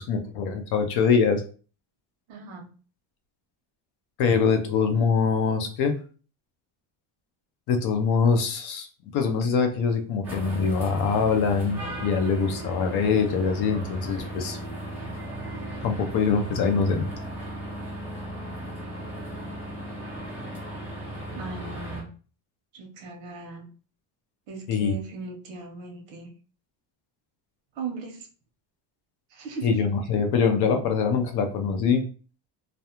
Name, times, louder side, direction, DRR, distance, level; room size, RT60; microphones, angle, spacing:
voice 1, 0.0-1.4 4.2-5.9 7.7-8.9 9.1-14.6 15.8-17.0 24.7-24.9 29.6-32.0, left 5 dB, 60° left, 6 dB, 0.6 m, -23 dB
voice 2, 2.3-2.7 21.3-22.1 22.7-23.7 24.5-26.3 27.7-28.3 29.3-29.8, right 4 dB, 75° right, 1 dB, 0.9 m, -38 dB
sound 1, 10.2-22.0, right 1 dB, 5° right, 0.5 m, -36 dB
2.4 x 2.2 x 2.9 m, 0.38 s
cardioid pair, 175°, 45 cm